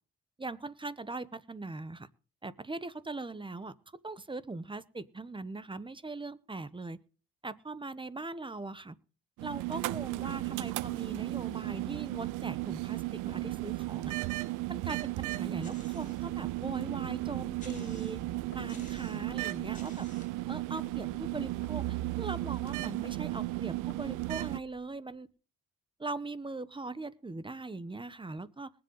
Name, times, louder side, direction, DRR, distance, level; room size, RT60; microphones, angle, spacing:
voice 1, 0.4-2.1 2.4-3.7 4.0-7.0 7.4-9.0 9.4-14.1 14.7-18.2 18.5-20.1 20.5-25.3 26.0-28.7, right 3 dB, 15° right, 16 dB, 0.9 m, -40 dB
sound 1, 9.4-24.6, right 19 dB, 85° right, 0.5 m, -35 dB
sound 2, 15.6-16.3 16.8-16.9 17.6-18.3 18.7-19.3 19.7-20.4, left 3 dB, 25° left, 4.2 m, -55 dB
sound 3, 16.3-25.2, left 3 dB, 45° left, 2.5 m, -56 dB
21.5 x 7.8 x 3.9 m, 0.38 s
cardioid pair, 90°, 30 cm